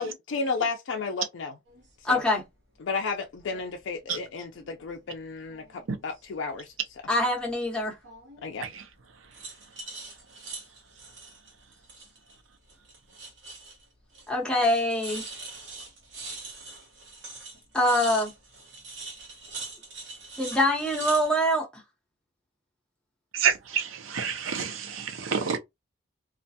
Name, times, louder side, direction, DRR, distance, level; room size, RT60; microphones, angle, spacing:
voice 1, 0.0-1.5 2.0-2.2 2.8-6.7 8.4-8.7, left 4 dB, 70° left, 0.4 m, -32 dB
sound 1, 1.7-1.9 3.4-3.6 4.0-4.9 5.4-6.3 8.0-8.5 9.3-12.4 12.7-13.8 14.1-14.3 14.5-21.3, right 3 dB, 60° right, 1.1 m, -42 dB
voice 2, 2.0-2.4 7.1-8.0 14.3-15.2 17.7-18.3 20.4-21.7, left 1 dB, 5° left, 0.8 m, -24 dB
voice 3, 23.3-25.6, right 7 dB, 85° right, 0.5 m, -28 dB
2.4 x 2.2 x 2.6 m
head